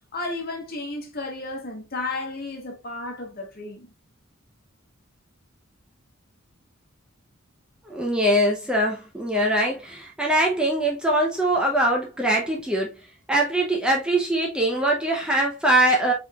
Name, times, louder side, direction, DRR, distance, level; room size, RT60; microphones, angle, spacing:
voice 1, 0.1-3.9, left 2 dB, 50° left, 1.2 m, -33 dB
voice 2, 7.9-12.9 13.3-16.1, right 1 dB, 5° right, 0.6 m, -22 dB
4.5 x 3.5 x 2.3 m
head